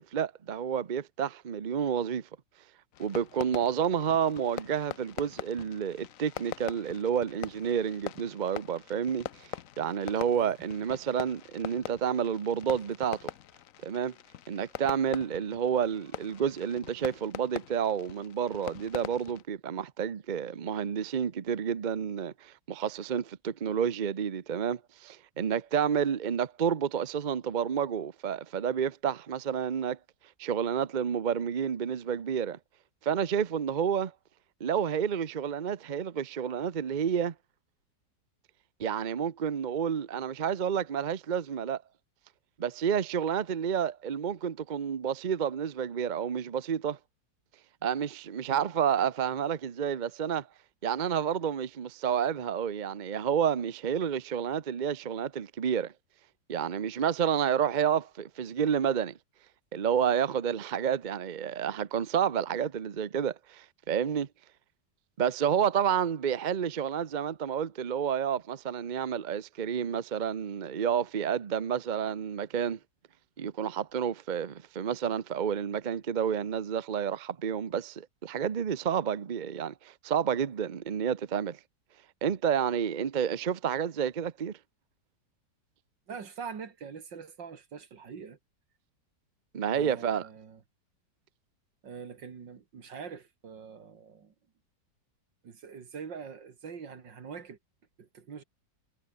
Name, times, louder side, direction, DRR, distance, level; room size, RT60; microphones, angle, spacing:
voice 1, 0.0-2.3 3.0-9.5 9.8-13.3 13.8-14.1 14.5-30.0 30.4-32.6 33.0-34.1 34.6-37.3 38.8-41.8 42.6-47.0 47.8-50.5 50.8-55.9 56.5-59.2 59.7-64.3 65.2-72.8 73.4-81.6 82.2-84.5 89.5-90.3, right 8 dB, 45° right, 0.6 m, -30 dB
Fireworks, 2.9-19.4, left 11 dB, 60° left, 1.0 m, -43 dB
voice 2, 86.1-88.4 89.7-90.6 91.8-94.3 95.4-97.6 98.0-98.4, right 6 dB, 80° right, 2.8 m, -44 dB
omnidirectional pair, 2.0 m